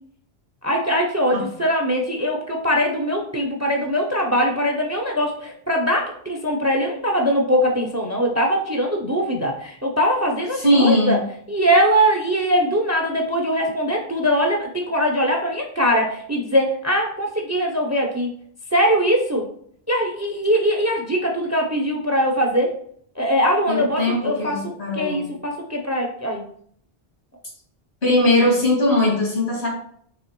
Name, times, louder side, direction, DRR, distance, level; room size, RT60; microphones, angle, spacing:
voice 1, 0.6-11.2 11.5-18.3 18.7-19.5 19.9-22.7 23.2-26.4, equal, 20° right, 1 dB, 0.5 m, -21 dB
voice 2, 10.5-11.2 23.7-25.3 28.0-29.7, left 1 dB, 90° left, -3 dB, 2.1 m, -19 dB
5.5 x 3.0 x 3.0 m, 0.63 s
omnidirectional pair, 1.0 m